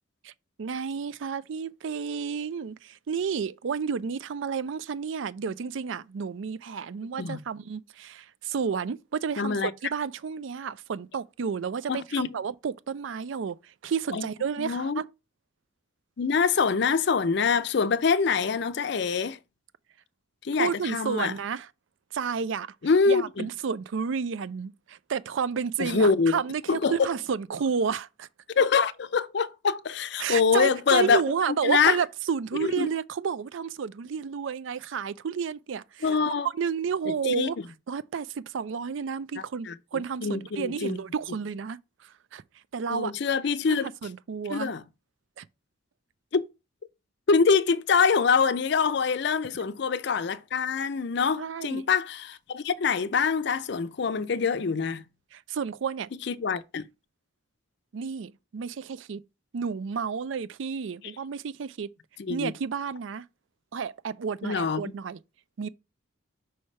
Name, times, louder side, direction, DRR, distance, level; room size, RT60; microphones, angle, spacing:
voice 1, 0.6-15.1 20.6-21.7 22.1-22.7 23.1-28.3 30.2-37.6 37.9-42.4 42.7-43.1 43.7-44.7 45.4-45.5 51.3-51.9 55.3-56.1 57.9-59.2 59.5-61.9 62.3-63.2 63.7-65.2 65.6-65.7, right 6 dB, 70° right, 0.4 m, -31 dB
voice 2, 9.4-9.7 11.9-12.3 14.1-14.3 14.6-15.0 16.2-19.4 20.4-21.3 22.8-23.5 25.8-26.4 26.7-27.0 28.6-31.2 31.5-32.0 32.6-32.9 36.0-36.5 37.3-37.5 39.7-39.8 40.2-41.0 42.9-43.9 44.5-44.8 46.3-46.5 47.3-55.0 56.3-56.8 62.2-62.5 64.4-64.8, left 5 dB, 55° left, 0.5 m, -25 dB
5.7 x 3.2 x 5.4 m
head